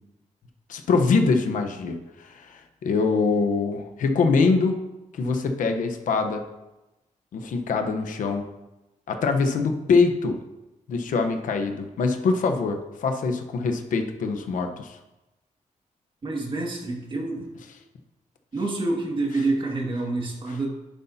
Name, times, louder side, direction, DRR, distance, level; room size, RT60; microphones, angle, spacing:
voice 1, 0.7-4.8 5.1-6.4 7.3-8.4 9.1-10.4 10.9-15.0, left 4 dB, 90° left, 5 dB, 1.0 m, -24 dB
voice 2, 16.2-17.5 18.5-20.7, right 2 dB, 40° right, -1 dB, 2.2 m, -27 dB
11.0 x 9.8 x 2.8 m, 1.0 s
wide cardioid pair, 125°, 13 cm